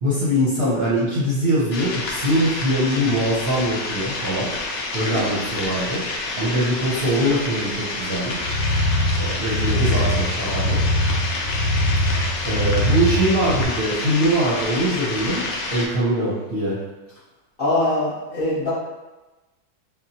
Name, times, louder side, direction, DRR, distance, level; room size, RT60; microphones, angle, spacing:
voice 1, 0.0-4.5 4.9-6.0 6.4-8.5 9.2-10.8 12.4-15.4 15.7-16.8, equal, 50° right, -9 dB, 0.7 m, -22 dB
sound 1, 1.7-15.9, left 2 dB, 65° left, 0.7 m, -29 dB
voice 2, 5.1-5.4 17.6-18.7, left 2 dB, 40° left, -10 dB, 1.0 m, -23 dB
sound 2, 8.4-13.7, left 1 dB, 15° left, 1.0 m, -22 dB
3.6 x 2.2 x 2.7 m, 1.1 s
omnidirectional pair, 1.6 m